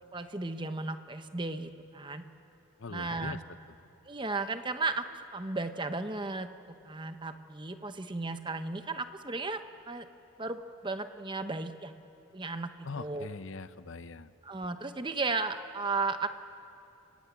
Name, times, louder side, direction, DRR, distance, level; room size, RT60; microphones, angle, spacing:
voice 1, 0.1-2.2 2.9-3.4 4.1-10.1 10.4-11.9 12.3-12.7 12.9-13.3 14.4-16.3, right 3 dB, 20° right, 9 dB, 0.9 m, -35 dB
voice 2, 2.8-3.4 12.8-14.3, left 4 dB, 60° left, 14 dB, 0.7 m, -41 dB
30.0 x 18.0 x 8.3 m, 2.8 s
head